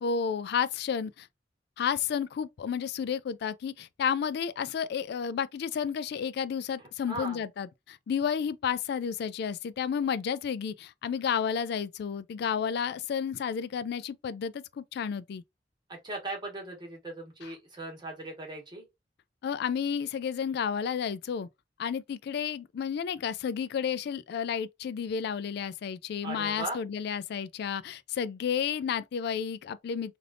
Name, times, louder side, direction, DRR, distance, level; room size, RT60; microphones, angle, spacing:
voice 1, 0.0-1.3 1.8-15.4 19.4-21.5 21.8-30.2, left 7 dB, 65° left, 0.3 m, -31 dB
voice 2, 6.8-7.4 15.9-18.8 26.2-26.8, right 2 dB, 25° right, 1.4 m, -38 dB
3.3 x 2.5 x 2.5 m
head